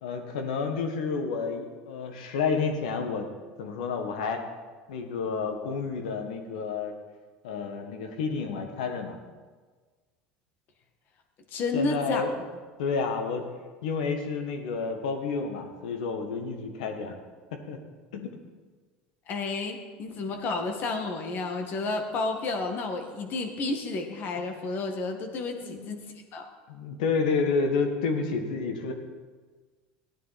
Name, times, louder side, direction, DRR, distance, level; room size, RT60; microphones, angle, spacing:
voice 1, 0.0-3.3 3.6-4.4 4.9-6.9 7.4-9.2 11.7-12.3 12.8-13.4 13.8-17.1 17.5-17.8 18.1-18.3 25.6-25.9 26.7-28.9, left 5 dB, 85° left, 5 dB, 1.7 m, -30 dB
voice 2, 11.5-12.2 19.3-26.0 26.3-26.5, left 3 dB, 50° left, 4 dB, 2.0 m, -31 dB
15.5 x 10.0 x 4.3 m, 1.4 s
supercardioid pair, 95°, 4 cm